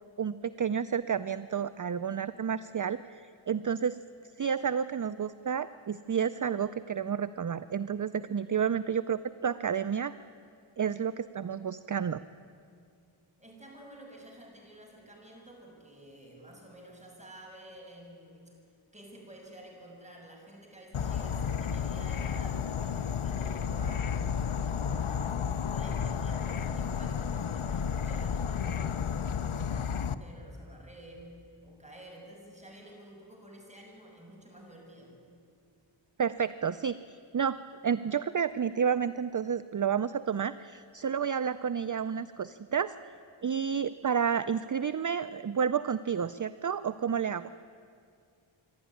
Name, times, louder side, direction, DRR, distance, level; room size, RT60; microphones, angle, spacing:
voice 1, 0.2-4.0 4.4-10.1 10.8-12.2 36.2-37.6 37.8-42.9 43.4-47.5, right 7 dB, 40° right, 14 dB, 0.5 m, -30 dB
voice 2, 13.4-18.6 18.9-35.2, right 1 dB, 15° right, -1 dB, 6.6 m, -51 dB
Insect / Frog, 20.9-30.1, left 7 dB, 75° left, 0.8 m, -32 dB
26.5 x 12.0 x 9.8 m, 2.3 s
wide cardioid pair, 45°, 49 cm